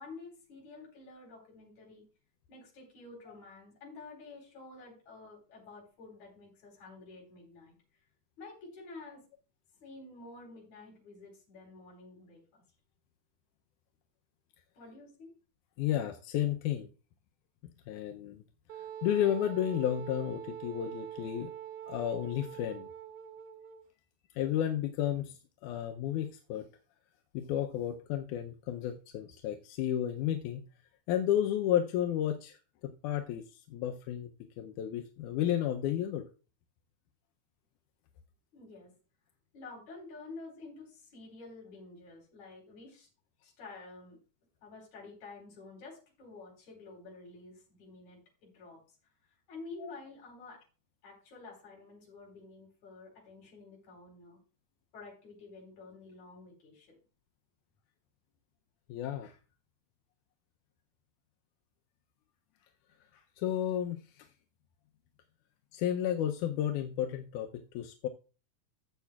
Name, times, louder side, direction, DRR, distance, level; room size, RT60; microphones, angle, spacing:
voice 1, 0.0-2.0 2.5-7.7 8.4-9.2 9.7-12.6 14.7-15.3 38.5-38.9 39.5-43.1 43.4-44.2 44.6-49.0 49.5-50.6 51.0-54.4 54.9-57.0, left 3 dB, 70° left, -2 dB, 4.8 m, -50 dB
voice 2, 15.8-16.9 17.9-18.4 18.8-21.5 21.9-22.9 24.3-26.7 27.3-30.6 31.1-32.6 32.8-36.3 49.8-49.9 58.9-59.3 63.4-64.3 65.7-67.5 67.7-68.1, left 11 dB, 85° left, 4 dB, 2.2 m, -32 dB
Wind instrument woodwind instrument, 18.7-23.8, right 10 dB, 75° right, 2.3 m, -44 dB
14.5 x 8.1 x 2.3 m, 0.35 s
omnidirectional pair, 3.5 m